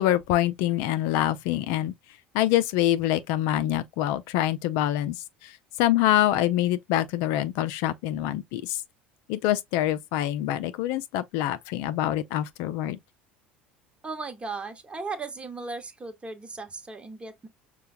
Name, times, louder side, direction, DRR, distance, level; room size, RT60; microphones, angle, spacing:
voice 1, 0.0-1.9 2.3-5.2 5.4-5.5 5.8-8.8 9.3-13.0, left 13 dB, 60° left, 0.4 m, -25 dB
voice 2, 14.0-17.5, right 3 dB, 20° right, 1.1 m, -36 dB
5.5 x 2.3 x 2.6 m
figure-of-eight pair, 70°, 5 cm